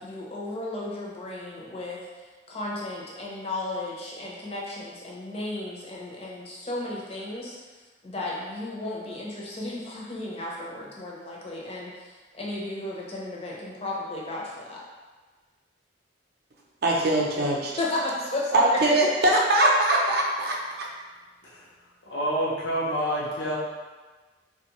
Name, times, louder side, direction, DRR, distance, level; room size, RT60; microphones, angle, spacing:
voice 1, 0.0-7.7 8.0-14.8 17.8-19.0, left 2 dB, 35° left, -4 dB, 0.6 m, -34 dB
voice 2, 16.8-17.8 18.5-20.9, right 1 dB, 55° right, -2 dB, 0.5 m, -22 dB
voice 3, 22.0-23.6, equal, 75° left, -4 dB, 0.7 m, -28 dB
3.5 x 2.3 x 2.9 m, 1.3 s
head